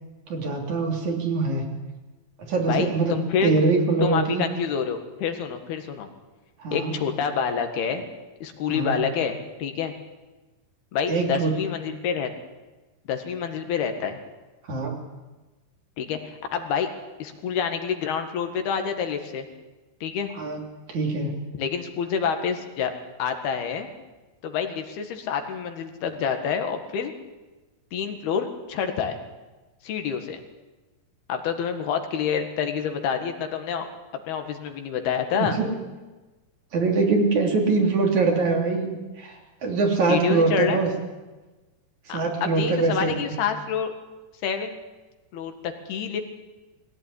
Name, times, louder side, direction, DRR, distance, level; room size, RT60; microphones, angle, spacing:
voice 1, 0.3-1.7 2.4-3.2 3.4-4.4 6.6-6.9 8.7-9.0 11.1-11.6 14.7-15.0 20.3-20.6 20.9-21.3 35.4-35.7 36.7-40.9 42.1-43.3, right 3 dB, 50° right, 2 dB, 4.2 m, -23 dB
voice 2, 2.6-3.5 4.0-6.1 6.7-8.1 8.4-9.9 10.9-12.3 13.1-14.2 16.0-16.9 17.2-19.5 20.0-20.3 21.6-22.9 23.2-23.9 24.4-27.1 27.9-29.2 29.8-30.4 31.3-33.9 34.3-35.6 40.1-40.8 42.1-43.9 44.4-44.8 45.3-46.2, left 7 dB, 80° left, 6 dB, 3.8 m, -27 dB
21.5 x 17.0 x 9.9 m, 1.2 s
omnidirectional pair, 4.4 m